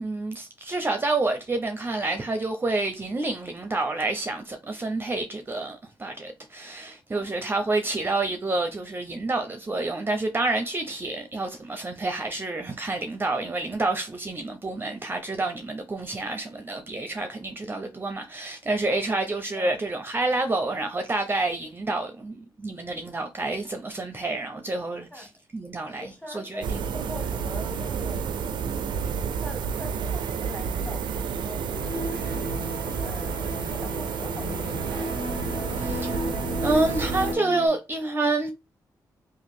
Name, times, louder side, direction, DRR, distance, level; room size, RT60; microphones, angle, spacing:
voice 1, 0.0-26.8 35.7-36.2 36.6-38.5, right 2 dB, 25° right, 0.6 m, -28 dB
voice 2, 7.1-7.7 19.5-19.8 25.1-25.3 26.0-29.0 29.4-35.3, left 1 dB, 15° left, 1.6 m, -42 dB
sound 1, 26.6-37.3, right 6 dB, 85° right, 0.4 m, -30 dB
sound 2, 31.6-37.7, left 2 dB, 55° left, 1.1 m, -34 dB
2.9 x 2.5 x 4.2 m
cardioid pair, 80°, 8 cm